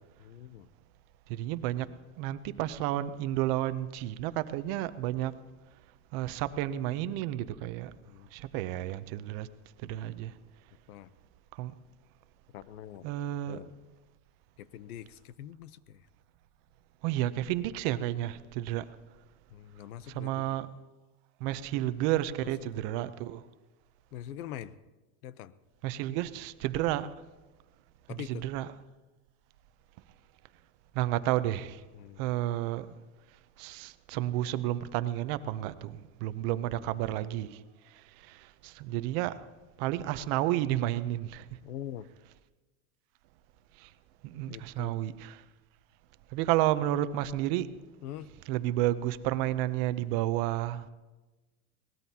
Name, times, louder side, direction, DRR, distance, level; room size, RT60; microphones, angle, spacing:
voice 1, 0.2-0.7 8.0-8.3 10.9-11.1 12.5-13.1 13.5-13.8 14.6-16.1 19.5-20.6 21.7-21.9 22.4-22.8 24.1-24.8 25.2-25.5 28.1-28.4 31.9-32.3 36.6-36.9 41.6-42.1 44.5-45.0 48.0-48.3, left 11 dB, 80° left, 0.8 m, -44 dB
voice 2, 1.3-1.9 2.2-5.4 6.1-8.0 8.3-9.5 9.8-10.3 11.5-11.7 13.0-13.6 17.0-18.9 20.1-20.7 21.4-23.4 25.8-27.1 28.3-28.7 30.9-31.8 32.2-33.0 33.6-39.4 39.8-41.6 43.8-43.9 44.2-45.3 46.3-47.7 48.5-50.9, right 14 dB, 40° right, 0.7 m, -31 dB
22.5 x 18.5 x 2.8 m
supercardioid pair, 155°, 44 cm